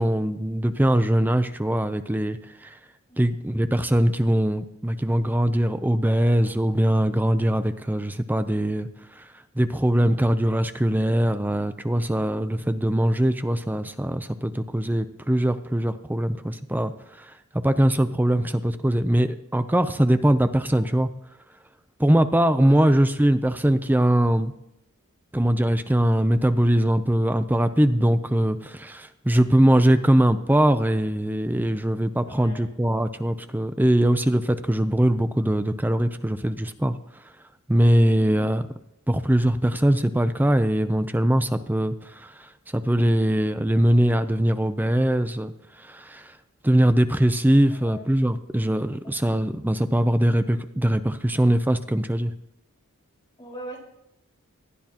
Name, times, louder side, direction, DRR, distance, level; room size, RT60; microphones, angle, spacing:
voice 1, 0.0-2.7 3.2-8.9 9.2-9.3 9.6-16.9 17.2-17.3 17.6-21.1 22.0-24.5 25.3-36.9 37.7-38.6 39.1-45.5 45.8-46.3 46.6-52.3, right 1 dB, 10° right, 10 dB, 0.5 m, -22 dB
voice 2, 3.1-3.4 18.4-18.5 22.5-23.0 29.3-29.6 32.3-32.6 38.0-38.4 47.6-48.0 49.0-49.4 53.4-53.8, equal, 20° left, -2 dB, 4.6 m, -43 dB
19.0 x 12.5 x 2.9 m, 0.81 s
head